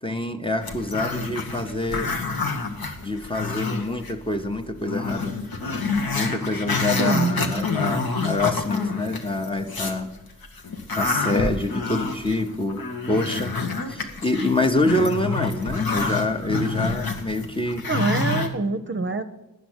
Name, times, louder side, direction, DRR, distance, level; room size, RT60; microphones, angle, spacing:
voice 1, 0.0-2.1 3.0-5.4 6.1-10.2 10.9-17.9, left 2 dB, 15° left, 6 dB, 0.8 m, -26 dB
Growling, 0.6-4.1 4.5-4.6 4.9-10.0 10.4-18.5, left 3 dB, 85° left, 1.1 m, -28 dB
voice 2, 7.0-7.5 17.9-19.2, right 3 dB, 35° right, 8 dB, 0.7 m, -24 dB
9.3 x 5.9 x 8.0 m, 0.99 s
cardioid pair, 45°, 35 cm